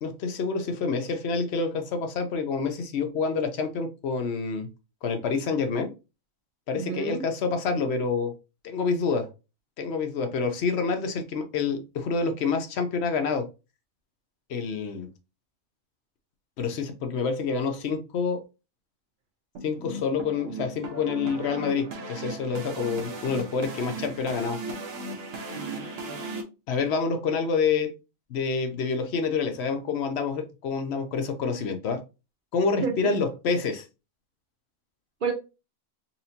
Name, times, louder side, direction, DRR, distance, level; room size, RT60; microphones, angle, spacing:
voice 1, 0.0-4.7 5.0-5.9 6.7-8.3 8.6-9.3 9.8-13.5 14.5-15.1 16.6-18.5 19.6-24.6 26.7-27.9 28.3-32.0 32.5-33.8, left 5 dB, 60° left, 0.9 m, -27 dB
voice 2, 6.7-7.2 25.5-26.2 32.8-33.2 35.2-35.3, right 5 dB, 50° right, 0.6 m, -31 dB
sound 1, 19.6-26.4, right 2 dB, 70° right, 1.1 m, -37 dB
4.2 x 2.7 x 2.7 m
omnidirectional pair, 1.4 m